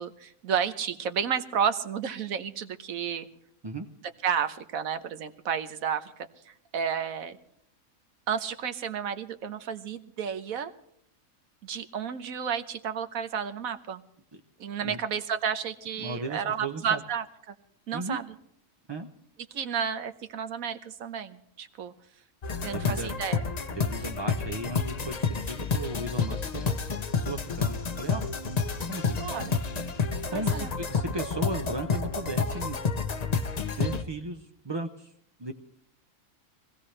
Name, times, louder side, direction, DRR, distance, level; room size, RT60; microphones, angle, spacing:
voice 1, 0.0-3.3 4.2-7.4 8.3-10.7 11.6-14.0 14.6-17.2 17.9-18.2 19.5-21.9 22.6-23.4 29.2-29.5 30.3-30.7, right 7 dB, 90° right, 10 dB, 1.4 m, -31 dB
voice 2, 16.0-17.0 17.9-18.2 18.9-19.1 22.7-23.1 23.7-26.8 27.2-28.2 28.9-29.2 29.9-32.8 33.8-35.1 35.4-35.5, right 2 dB, 35° right, 4 dB, 0.4 m, -36 dB
sound 1, 22.4-34.0, left 5 dB, 35° left, 0.7 m, -30 dB
23.5 x 16.0 x 3.2 m, 0.69 s
omnidirectional pair, 1.4 m